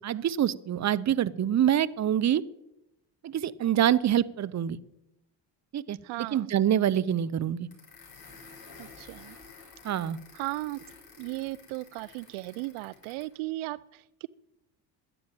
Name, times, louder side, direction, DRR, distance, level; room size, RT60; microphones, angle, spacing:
voice 1, 0.0-2.4 3.2-4.8 5.7-7.7 9.8-10.2, right 10 dB, 35° right, 19 dB, 0.7 m, -26 dB
voice 2, 6.0-6.5 8.8-9.4 10.3-10.8 11.2-14.3, right 20 dB, 75° right, 21 dB, 0.6 m, -36 dB
sound 1, 7.7-13.4, left 4 dB, 45° left, 6.6 m, -51 dB
11.0 x 10.5 x 8.9 m, 0.89 s
supercardioid pair, 75°, 48 cm